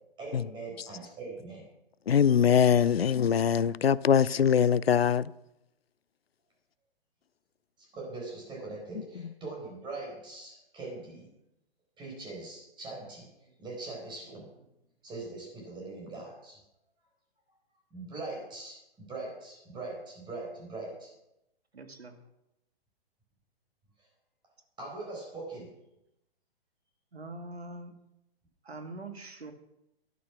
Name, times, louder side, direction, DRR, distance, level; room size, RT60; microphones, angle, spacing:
voice 1, 0.2-1.7 7.8-11.3 12.0-13.3 13.6-14.5 15.0-16.6 17.9-21.1 24.8-25.7, right 3 dB, 15° right, 4.7 m, -41 dB
voice 2, 2.1-5.3, left 8 dB, 70° left, 0.6 m, -23 dB
voice 3, 21.7-22.2 27.1-27.9 28.6-29.5, right 2 dB, 75° right, 2.3 m, -43 dB
12.5 x 11.5 x 6.0 m
figure-of-eight pair, 125°, 31 cm